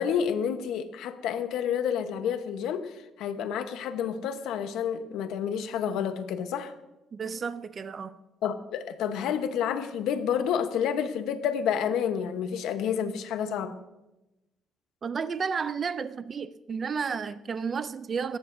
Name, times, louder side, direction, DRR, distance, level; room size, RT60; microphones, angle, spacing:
voice 1, 0.0-6.7 8.4-13.8, left 8 dB, 80° left, 1.1 m, -29 dB
voice 2, 7.1-8.2 15.0-18.4, right 6 dB, 30° right, 0.4 m, -32 dB
18.5 x 14.0 x 2.7 m
cardioid pair, 160°, 0 cm